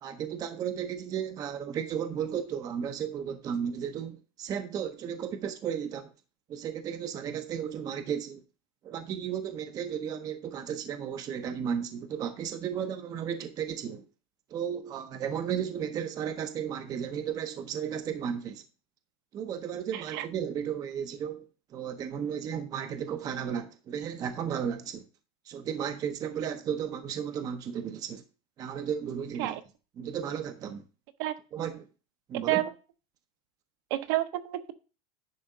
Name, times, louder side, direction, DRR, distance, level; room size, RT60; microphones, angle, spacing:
voice 1, 0.0-6.1 6.5-8.4 8.8-14.0 14.5-18.6 19.3-25.0 25.5-28.2 28.6-29.6 30.0-30.8 31.5-31.8 32.3-32.7, right 8 dB, 20° right, 0.7 m, -34 dB
voice 2, 19.9-20.2 29.4-29.6 31.2-31.3 32.5-32.7 33.9-34.7, right 15 dB, 45° right, 0.9 m, -29 dB
10.5 x 3.5 x 6.4 m
supercardioid pair, 165°, 18 cm